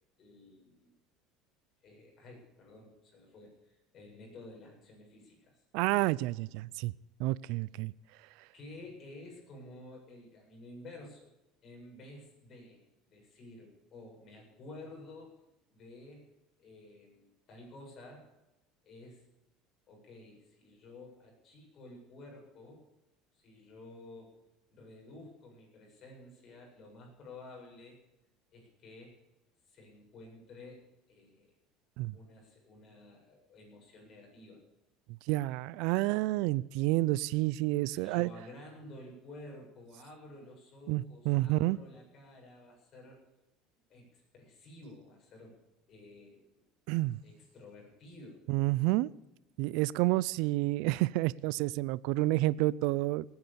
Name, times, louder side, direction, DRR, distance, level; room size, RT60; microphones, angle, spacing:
voice 1, 0.2-0.9 1.8-5.6 8.5-11.3 11.6-15.4 15.7-16.3 16.6-18.3 18.8-19.2 19.9-22.8 23.3-24.3 24.7-28.0 28.5-29.2 29.7-31.5 32.1-34.6 37.9-43.2 43.9-45.6 45.9-46.6 47.2-48.4, left 2 dB, 40° left, 0 dB, 7.6 m, -52 dB
voice 2, 5.7-6.9 7.2-7.9 32.0-32.2 35.3-38.3 40.9-41.8 46.9-47.2 48.5-49.1 49.6-53.2, right 19 dB, 70° right, 21 dB, 0.5 m, -29 dB
18.5 x 9.7 x 7.0 m, 0.94 s
cardioid pair, 135°, 0 cm